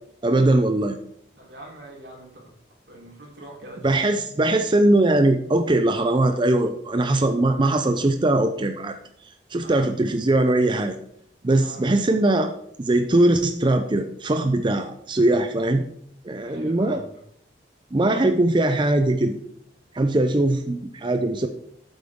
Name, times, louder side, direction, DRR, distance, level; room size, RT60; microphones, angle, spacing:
voice 1, 0.2-1.0 3.8-9.0 9.5-10.9 11.4-12.5 12.8-15.8 16.2-17.0 17.9-19.4 19.9-21.5, right 2 dB, 25° right, 7 dB, 0.5 m, -21 dB
voice 2, 1.4-2.5 2.9-4.0 9.5-9.9 11.5-11.9 16.4-17.2, right 1 dB, 85° right, -4 dB, 3.6 m, -44 dB
8.6 x 8.0 x 3.6 m, 0.68 s
head